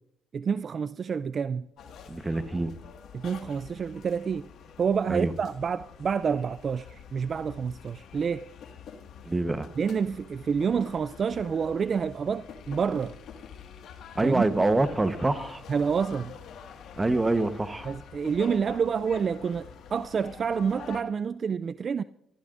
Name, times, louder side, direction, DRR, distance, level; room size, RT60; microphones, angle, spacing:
voice 1, 0.3-1.7 3.1-4.5 4.8-8.4 9.8-13.2 14.2-14.4 15.7-16.3 17.8-22.0, right 6 dB, 50° right, 0.4 m, -28 dB
sound 1, 1.8-21.0, left 7 dB, 75° left, 1.8 m, -46 dB
voice 2, 2.1-2.7 5.1-5.3 9.2-9.7 14.1-15.6 17.0-17.9, right 2 dB, 20° right, 1.1 m, -25 dB
23.5 x 14.5 x 2.6 m
cardioid pair, 90°, 0 cm